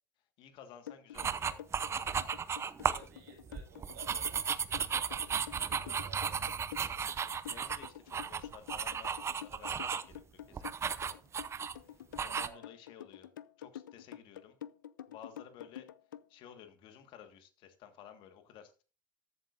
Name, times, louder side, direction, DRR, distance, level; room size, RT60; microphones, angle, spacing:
voice 1, 0.4-1.6 7.4-10.1 10.5-10.7 11.0-11.2 11.6-11.8 12.2-13.3 13.6-14.6 15.1-15.9 16.3-18.8, left 9 dB, 55° left, 1.7 m, -54 dB
sound 1, 0.9-16.3, left 10 dB, 90° left, 0.4 m, -48 dB
sound 2, 1.1-3.1 3.5-10.1 10.5-11.8 12.2-12.5, right 7 dB, 25° right, 0.7 m, -35 dB
voice 2, 1.8-5.3 5.8-6.6 12.2-12.7, right 6 dB, 80° right, 6.2 m, -57 dB
14.0 x 7.8 x 2.6 m
hypercardioid pair, 85°, 10 cm